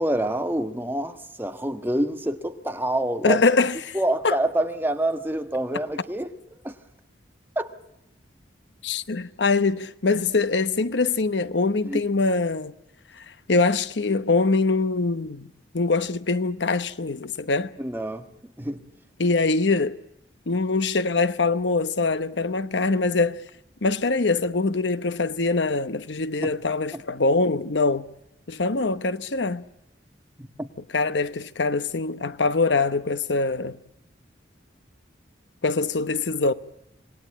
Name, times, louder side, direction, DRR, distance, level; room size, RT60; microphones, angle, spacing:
voice 1, 0.0-3.4 3.9-6.3 6.6-6.7 7.5-7.7 11.9-12.0 17.8-18.3 18.6-18.8 26.4-26.5 26.9-27.0 30.4-30.7, right 1 dB, 10° right, 1.4 m, -27 dB
voice 2, 3.2-4.0 4.2-4.4 8.8-12.7 13.5-15.5 15.7-17.7 19.2-19.9 20.5-23.4 23.8-28.1 28.5-29.6 30.9-33.8 35.6-36.5, left 3 dB, 75° left, 0.9 m, -23 dB
27.0 x 20.0 x 8.6 m
head